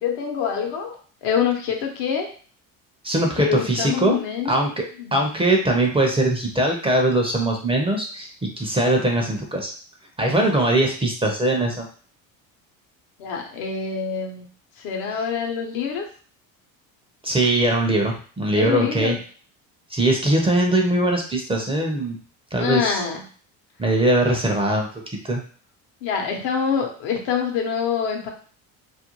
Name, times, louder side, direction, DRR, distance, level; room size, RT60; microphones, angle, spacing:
voice 1, 0.0-1.0 1.2-2.3 3.3-4.5 5.0-5.3 13.2-14.4 14.8-16.1 18.5-19.2 22.5-23.2 26.0-28.3, left 7 dB, 70° left, 2 dB, 0.8 m, -25 dB
voice 2, 3.0-4.2 4.4-4.9 5.1-9.7 10.2-11.9 17.2-19.2 19.9-22.2 22.5-23.0 23.8-24.9 25.3-25.4, right 1 dB, 15° right, 1 dB, 0.5 m, -21 dB
2.5 x 2.1 x 2.9 m, 0.42 s
supercardioid pair, 85°, 41 cm